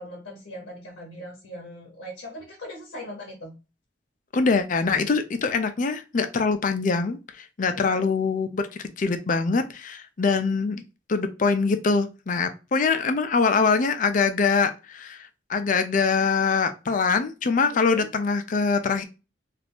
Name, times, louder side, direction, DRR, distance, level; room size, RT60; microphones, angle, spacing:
voice 1, 0.0-3.6 7.7-8.1 17.7-18.1, equal, 65° left, -1 dB, 0.8 m, -40 dB
voice 2, 4.3-10.8 11.1-19.0, left 4 dB, 45° left, 9 dB, 0.4 m, -24 dB
2.6 x 2.5 x 3.4 m, 0.29 s
head